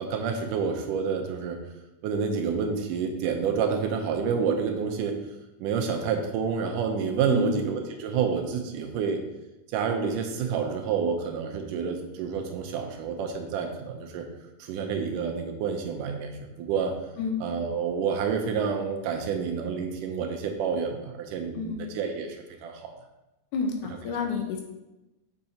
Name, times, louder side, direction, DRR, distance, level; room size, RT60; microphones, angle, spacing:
voice 1, 0.0-1.6 2.0-5.2 5.6-9.2 9.7-14.3 14.6-16.9 17.4-22.9, right 6 dB, 80° right, 3 dB, 2.2 m, -29 dB
voice 2, 23.5-24.6, left 5 dB, 75° left, 3 dB, 2.0 m, -29 dB
6.9 x 6.3 x 2.8 m, 0.99 s
omnidirectional pair, 3.9 m